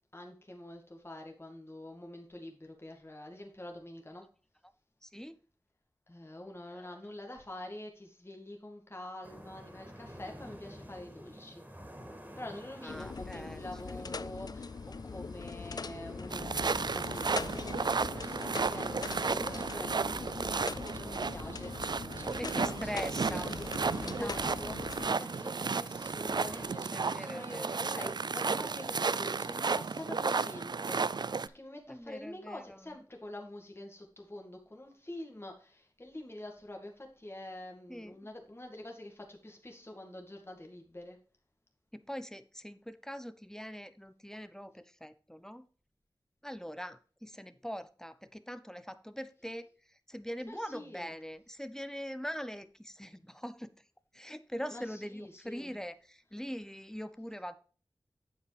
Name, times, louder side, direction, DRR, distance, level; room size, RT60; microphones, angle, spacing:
voice 1, 0.1-4.3 6.1-11.6 12.4-14.7 15.1-24.8 25.1-41.2 50.5-51.1 54.7-55.7, left 1 dB, 30° left, 1 dB, 1.9 m, -46 dB
voice 2, 5.0-5.4 6.7-7.0 12.8-14.0 22.4-23.6 24.0-24.7 24.9-25.1 26.9-27.8 31.9-33.0 37.9-38.3 41.9-45.7 46.4-53.8 54.1-57.6, equal, 5° left, 13 dB, 0.7 m, -42 dB
sound 1, 9.2-26.7, equal, 20° right, 2.6 m, -50 dB
sound 2, 12.9-25.1, left 4 dB, 55° left, 0.3 m, -42 dB
sound 3, 16.3-31.5, right 4 dB, 60° right, 0.4 m, -33 dB
8.5 x 7.2 x 3.3 m, 0.39 s
wide cardioid pair, 50°, 8 cm